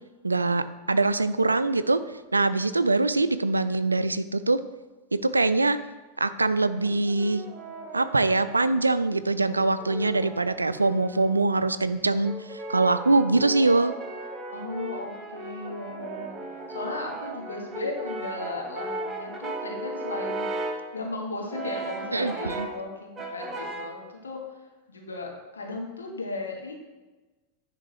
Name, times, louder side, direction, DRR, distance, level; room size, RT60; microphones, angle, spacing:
voice 1, 0.2-2.0 2.3-4.6 5.1-5.8 6.2-7.5 7.9-13.9 22.1-22.7, right 3 dB, 80° right, 13 dB, 0.3 m, -23 dB
Brass instrument, 6.8-8.8 9.5-11.6 12.2-20.9 21.5-22.8 23.2-24.0, right 2 dB, 15° right, 1.0 m, -36 dB
voice 2, 14.5-16.3 16.7-20.4 20.9-24.4 24.9-26.7, left 2 dB, 75° left, 1 dB, 1.3 m, -36 dB
10.0 x 3.7 x 4.7 m, 1.2 s
figure-of-eight pair, 90°, 0 cm